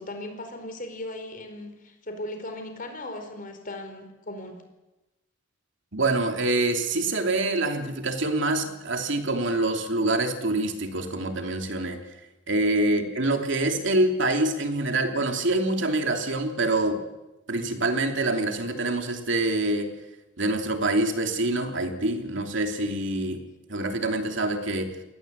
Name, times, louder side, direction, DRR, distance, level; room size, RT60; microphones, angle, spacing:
voice 1, 0.0-4.6 12.7-13.0, left 1 dB, 45° left, 6 dB, 4.5 m, -38 dB
voice 2, 5.9-12.0 12.5-17.0 17.5-19.9 20.4-23.4 23.7-24.9, right 2 dB, 65° right, 4 dB, 3.1 m, -25 dB
24.0 x 19.0 x 8.2 m, 1.0 s
head